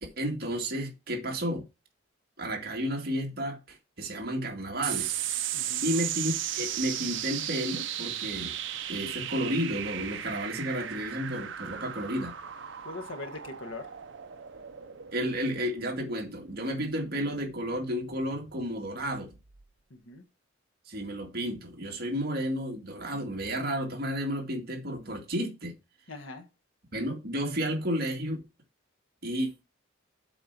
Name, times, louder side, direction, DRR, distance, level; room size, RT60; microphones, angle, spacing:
voice 1, 0.0-1.6 2.4-5.2 5.8-8.5 8.9-12.3 15.1-19.4 20.9-25.7 26.9-28.4 29.2-29.6, equal, 50° right, 2.1 m, -32 dB
sound 1, 4.8-19.6, right 11 dB, 65° right, 0.8 m, -36 dB
voice 2, 5.5-5.9 12.8-13.9 19.9-20.2 26.1-26.5, left 2 dB, 85° left, 1.5 m, -41 dB
7.8 x 4.6 x 6.1 m
head